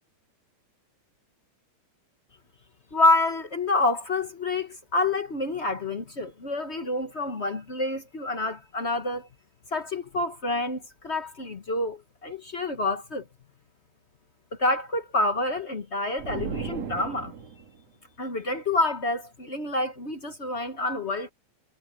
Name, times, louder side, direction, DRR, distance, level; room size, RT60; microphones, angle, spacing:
voice 1, 2.9-9.3 9.7-13.2 14.6-17.3 18.2-21.3, left 2 dB, 40° left, 0.9 m, -27 dB
sound 1, 16.2-17.8, right 6 dB, 55° right, 3.3 m, -35 dB
omnidirectional pair, 3.4 m